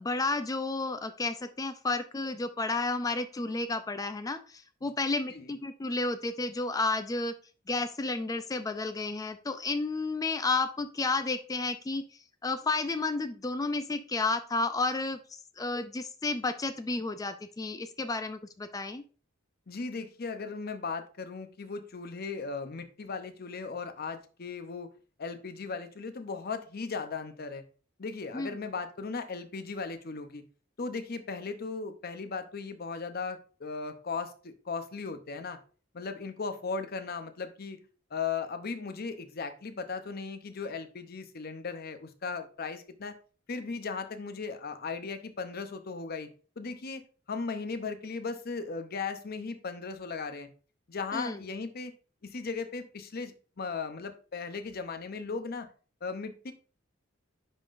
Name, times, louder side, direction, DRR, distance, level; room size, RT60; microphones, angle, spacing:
voice 1, 0.0-7.3 7.7-12.0 12.4-19.0 28.3-28.6 51.1-51.4, left 3 dB, 20° left, 10 dB, 0.4 m, -31 dB
voice 2, 19.7-24.9 25.2-27.6 28.0-30.4 30.8-35.6 35.9-37.8 38.1-43.1 43.5-47.0 47.3-50.5 50.9-51.9 52.2-55.7 56.0-56.5, left 4 dB, 50° left, 9 dB, 0.7 m, -37 dB
10.5 x 3.8 x 2.5 m, 0.38 s
head